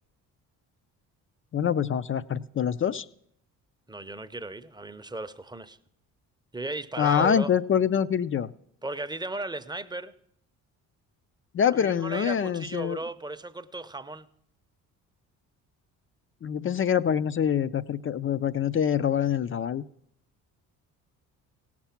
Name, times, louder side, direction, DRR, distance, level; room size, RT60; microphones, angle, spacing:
voice 1, 1.5-3.1 7.0-8.5 11.5-13.0 16.4-19.8, left 8 dB, 35° left, 0.4 m, -25 dB
voice 2, 3.9-5.8 6.5-7.5 8.8-10.1 11.7-14.3, right 2 dB, 10° right, 0.7 m, -35 dB
17.0 x 6.0 x 5.8 m
supercardioid pair, 60°, 40 cm